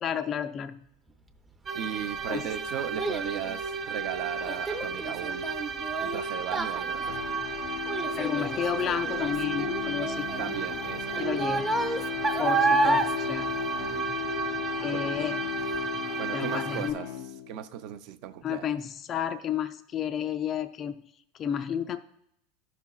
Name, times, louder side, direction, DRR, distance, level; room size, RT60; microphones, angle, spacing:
voice 1, 0.0-0.8 2.3-2.4 8.2-10.3 11.2-11.8 12.4-13.5 14.8-15.4 16.3-17.0 18.4-21.0 21.4-22.0, left 8 dB, 30° left, 9 dB, 0.3 m, -31 dB
sound 1, 1.7-16.9, right 5 dB, 35° right, 1.0 m, -34 dB
voice 2, 1.7-5.5 6.0-7.3 10.4-11.1 14.9-15.0 16.2-17.1 17.5-18.8, right 10 dB, 55° right, 10 dB, 0.5 m, -37 dB
Child speech kid speaking, 1.8-14.5 14.8-15.2 15.7-15.8, right 3 dB, 15° right, 0.6 m, -31 dB
sound 2, 7.0-17.7, left 11 dB, 80° left, 0.6 m, -36 dB
13.0 x 5.9 x 2.3 m, 0.75 s
supercardioid pair, 140°, 0 cm